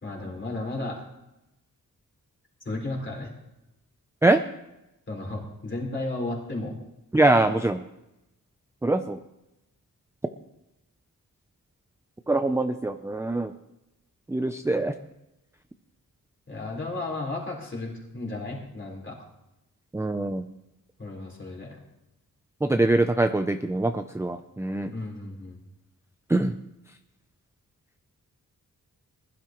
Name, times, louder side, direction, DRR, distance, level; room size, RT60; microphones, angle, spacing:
voice 1, 0.0-1.0 2.6-3.3 5.1-6.8 16.5-19.2 21.0-21.8 24.9-25.6, left 2 dB, 35° left, -2 dB, 4.1 m, -34 dB
voice 2, 7.1-7.8 8.8-9.2 12.3-13.5 14.3-15.0 19.9-20.5 22.6-24.9 26.3-26.6, right 2 dB, 10° right, 8 dB, 0.4 m, -23 dB
20.5 x 12.0 x 3.0 m, 0.92 s
wide cardioid pair, 130°, 35 cm